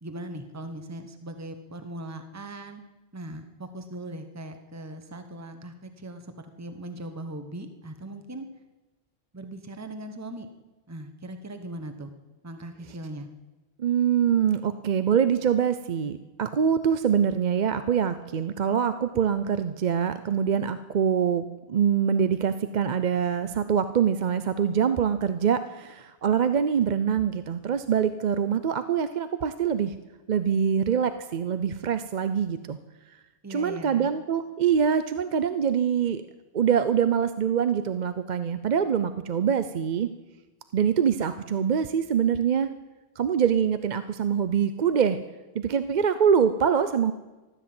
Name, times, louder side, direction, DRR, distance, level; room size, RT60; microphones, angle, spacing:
voice 1, 0.0-2.9 3.1-8.5 9.3-10.5 10.9-12.1 12.4-13.3 33.4-34.1, right 1 dB, 15° right, 7 dB, 1.1 m, -39 dB
voice 2, 13.8-29.9 30.3-32.8 33.5-36.2 36.5-40.1 40.7-42.7 43.2-45.2 45.5-47.1, right 7 dB, 50° right, 11 dB, 0.7 m, -24 dB
14.0 x 13.0 x 7.7 m, 1.1 s
omnidirectional pair, 1.1 m